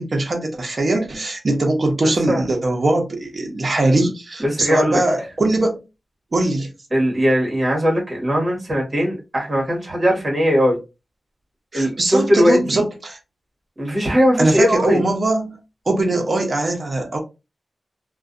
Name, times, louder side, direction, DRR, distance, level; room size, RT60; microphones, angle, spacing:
voice 1, 0.0-5.8 6.3-6.7 11.7-13.2 14.4-15.6 15.9-17.2, right 2 dB, 40° right, 0.6 m, -21 dB
voice 2, 2.0-2.4 4.0-4.1 4.4-5.0 6.9-10.8 11.7-12.8 13.8-15.0, equal, 20° right, 1.2 m, -19 dB
2.5 x 2.2 x 2.4 m
wide cardioid pair, 135°, 0 cm